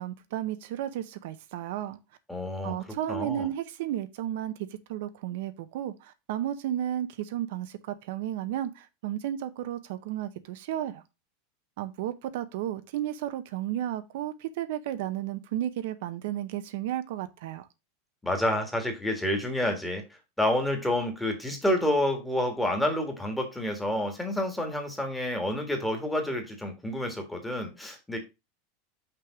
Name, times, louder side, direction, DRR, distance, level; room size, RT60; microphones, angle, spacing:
voice 1, 0.0-2.0 2.6-11.0 11.8-17.7, right 12 dB, 65° right, 0.6 m, -33 dB
voice 2, 2.3-2.7 3.1-3.5 18.2-20.0 20.4-28.2, left 1 dB, 5° left, 1.5 m, -29 dB
5.9 x 3.4 x 5.9 m
supercardioid pair, 160°, 0 cm